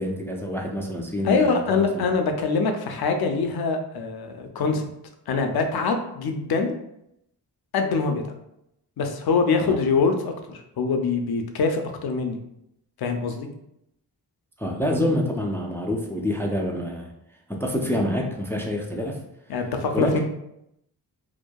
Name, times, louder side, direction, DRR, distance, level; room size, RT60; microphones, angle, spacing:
voice 1, 0.0-2.1 9.6-9.8 14.6-17.1 17.5-19.2 19.9-20.2, left 1 dB, 5° left, 0 dB, 0.3 m, -27 dB
voice 2, 1.2-4.8 5.3-6.8 7.7-8.2 9.0-12.4 13.0-13.5 19.5-20.2, left 4 dB, 65° left, 5 dB, 0.5 m, -24 dB
2.6 x 2.2 x 2.2 m, 0.80 s
cardioid pair, 60°, 41 cm